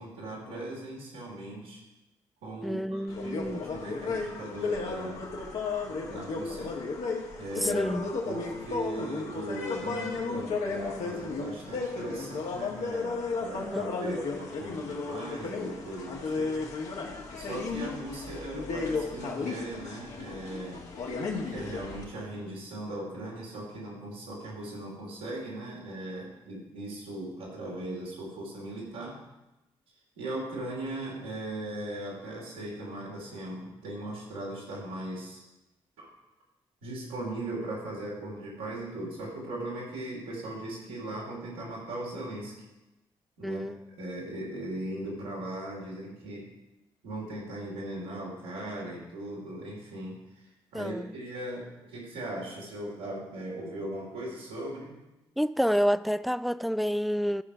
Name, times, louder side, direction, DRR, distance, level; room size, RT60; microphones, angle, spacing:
voice 1, 0.0-1.8 2.4-5.2 6.0-6.7 7.4-7.9 8.2-16.6 17.0-17.1 17.4-20.8 21.5-29.2 30.2-35.4 36.0-36.1 36.8-42.5 43.4-46.5 47.0-50.1 50.7-54.9, right 1 dB, 90° right, 3.1 m, -38 dB
voice 2, 2.6-3.7 7.6-8.1 13.7-14.2 43.4-43.8 50.7-51.1 55.4-57.4, equal, ahead, 0.4 m, -29 dB
sound 1, 3.1-22.0, left 4 dB, 75° left, 1.8 m, -34 dB
13.5 x 5.0 x 5.8 m
hypercardioid pair, 45°, 12 cm